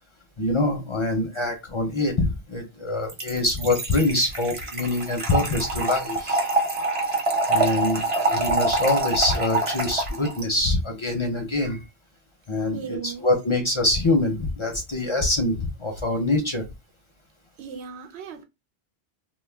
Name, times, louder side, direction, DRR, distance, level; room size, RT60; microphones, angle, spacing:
voice 1, 0.4-6.5 7.5-11.8 12.5-16.6, left 2 dB, 40° left, 0.4 m, -25 dB
Trickle dribble / Fill (with liquid), 3.1-10.5, right 2 dB, 40° right, 0.6 m, -25 dB
voice 2, 12.7-13.3 17.6-18.4, right 6 dB, 80° right, 0.9 m, -36 dB
2.2 x 2.2 x 3.2 m
omnidirectional pair, 1.1 m